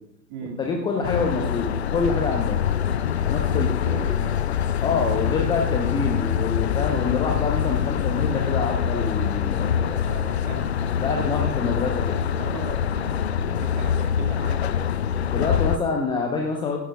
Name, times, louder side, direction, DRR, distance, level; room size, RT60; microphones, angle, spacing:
voice 1, 0.6-2.6 3.2-3.7 4.8-9.7 10.4-10.6 11.0-12.2 13.5-13.6 15.3-16.8, left 4 dB, 10° left, 1 dB, 0.9 m, -26 dB
sound 1, 1.0-15.8, left 8 dB, 40° left, 0.6 m, -24 dB
voice 2, 3.2-4.4 9.6-10.7 11.0-11.4 12.0-14.9, right 5 dB, 30° right, 2 dB, 2.2 m, -38 dB
21.5 x 10.5 x 2.4 m, 0.82 s
figure-of-eight pair, 115°, 49 cm